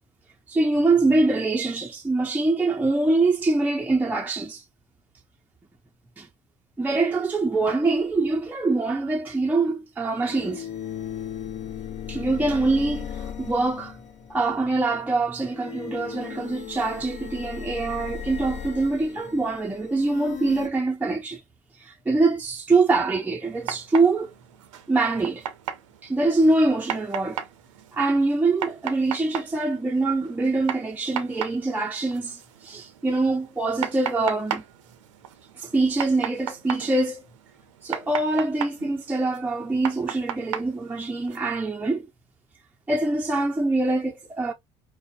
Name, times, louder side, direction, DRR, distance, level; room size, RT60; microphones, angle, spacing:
voice 1, 0.5-4.6 6.2-6.3 6.8-10.7 12.1-14.0 14.3-21.4 21.8-24.3 24.9-25.5 26.0-27.4 27.9-34.6 35.6-37.2 37.8-42.1 42.9-44.5, right 3 dB, 10° right, 0.5 m, -24 dB
sound 1, 7.9-8.0 10.1-14.6 15.4-20.7, left 9 dB, 50° left, 0.8 m, -37 dB
sound 2, 23.4-41.4, right 10 dB, 85° right, 0.5 m, -36 dB
4.9 x 2.1 x 2.5 m
hypercardioid pair, 70°, 16 cm